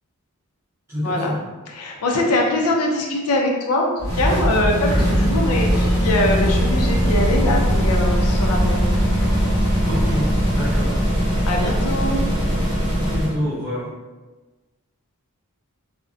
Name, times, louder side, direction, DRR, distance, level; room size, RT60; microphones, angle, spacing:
voice 1, 0.9-1.4 4.9-5.3 9.8-11.0 12.9-13.9, equal, 10° right, -12 dB, 0.6 m, -27 dB
voice 2, 1.7-8.9 11.5-12.2, left 1 dB, 85° left, 0 dB, 0.5 m, -22 dB
sound 1, 4.0-13.3, equal, 15° left, 1.0 m, -20 dB
sound 2, 4.1-10.1, right 1 dB, 85° right, 0.8 m, -36 dB
2.5 x 2.1 x 2.4 m, 1.2 s
head